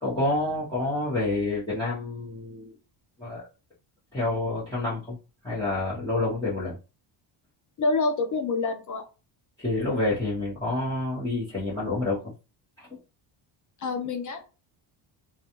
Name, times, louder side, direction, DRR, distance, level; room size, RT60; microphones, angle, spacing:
voice 1, 0.0-2.7 3.2-3.4 4.1-5.2 5.4-6.8 9.6-12.3 12.8-12.9, left 2 dB, 10° left, 0.9 m, -28 dB
voice 2, 7.8-9.0 13.8-14.4, left 3 dB, 40° left, 0.5 m, -27 dB
2.3 x 2.3 x 2.9 m
cardioid pair, 115°, 47 cm